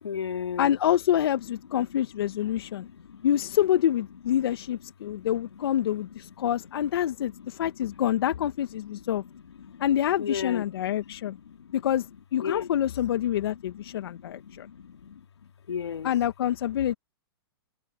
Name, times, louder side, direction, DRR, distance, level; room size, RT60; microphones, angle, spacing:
voice 1, 0.0-0.8 1.8-1.9 2.4-3.3 4.4-4.5 5.0-5.6 6.2-6.5 7.3-8.1 8.7-9.9 10.2-11.9 12.4-12.9 13.4-15.2 15.7-16.1 16.9-17.0, left 7 dB, 90° left, 2.7 m, -38 dB
voice 2, 0.6-2.9 3.2-9.2 9.8-11.4 11.7-12.1 12.3-14.7 16.0-16.9, left 11 dB, 65° left, 1.2 m, -26 dB
hypercardioid pair, 140°, 13 cm